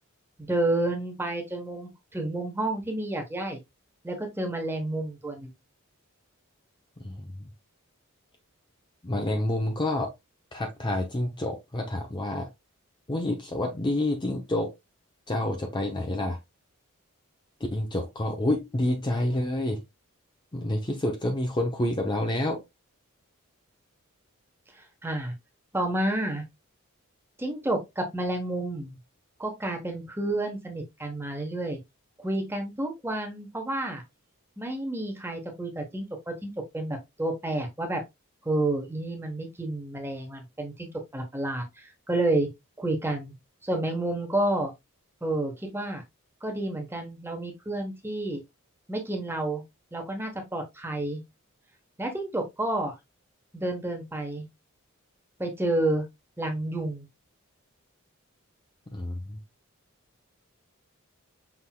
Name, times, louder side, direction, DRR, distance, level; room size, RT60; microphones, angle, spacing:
voice 1, 0.4-3.6 4.0-5.5 25.0-25.3 25.7-26.4 27.4-29.0 29.4-31.8 32.2-34.0 34.6-38.0 38.4-42.5 42.8-43.3 43.6-44.7 45.2-46.0 46.4-48.4 48.9-49.6 49.9-51.2 52.0-52.9 53.5-54.5 55.4-56.1 56.4-57.1, right 1 dB, 10° right, 1.0 m, -30 dB
voice 2, 7.0-7.5 9.0-10.1 10.5-12.5 13.1-14.7 15.3-16.4 17.7-19.8 20.5-22.6 58.9-59.4, left 1 dB, 20° left, 0.6 m, -28 dB
5.8 x 3.5 x 2.2 m
head